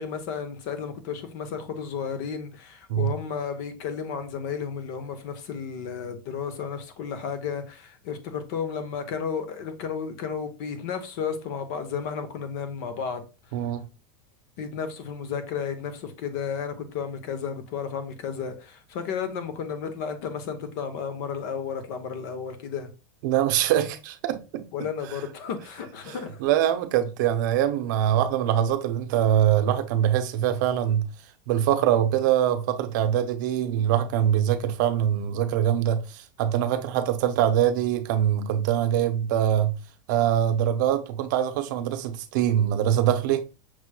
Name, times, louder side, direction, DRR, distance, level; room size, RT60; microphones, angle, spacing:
voice 1, 0.0-13.2 14.6-22.9 24.7-26.4, left 6 dB, 50° left, 0.9 m, -33 dB
voice 2, 13.5-13.9 23.2-24.6 26.1-31.1 31.5-39.7 40.1-43.5, right 10 dB, 55° right, 0.6 m, -23 dB
6.0 x 3.0 x 2.2 m
supercardioid pair, 170°, 12 cm